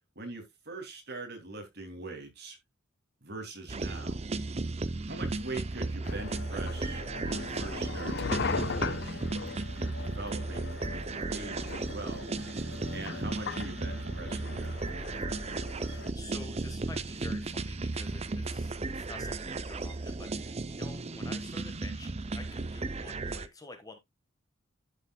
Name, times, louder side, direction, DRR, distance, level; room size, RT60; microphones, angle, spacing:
voice 1, 0.2-2.6 3.2-4.2 5.1-9.2 9.7-12.2 12.9-14.9, right 2 dB, 50° right, 2.7 m, -42 dB
sound 1, 3.7-23.5, right 3 dB, 30° right, 0.6 m, -35 dB
sound 2, 6.0-16.1, left 4 dB, 50° left, 0.6 m, -39 dB
voice 2, 15.9-24.0, left 2 dB, 15° left, 1.3 m, -49 dB
11.0 x 6.8 x 2.3 m
head